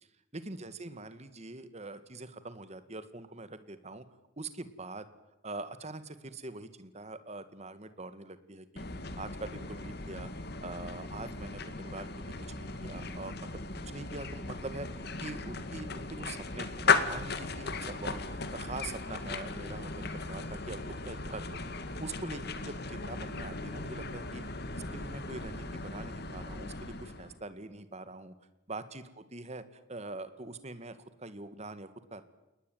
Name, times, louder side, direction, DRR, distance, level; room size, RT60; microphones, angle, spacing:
voice 1, 0.3-4.1 4.4-5.1 5.4-8.8 9.2-10.3 10.6-13.5 13.9-21.6 22.0-24.4 24.7-28.3 28.7-32.2, right 2 dB, 35° right, 12 dB, 1.9 m, -43 dB
sound 1, 8.8-27.4, left 4 dB, 55° left, 2.1 m, -36 dB
29.0 x 19.5 x 9.2 m, 0.97 s
head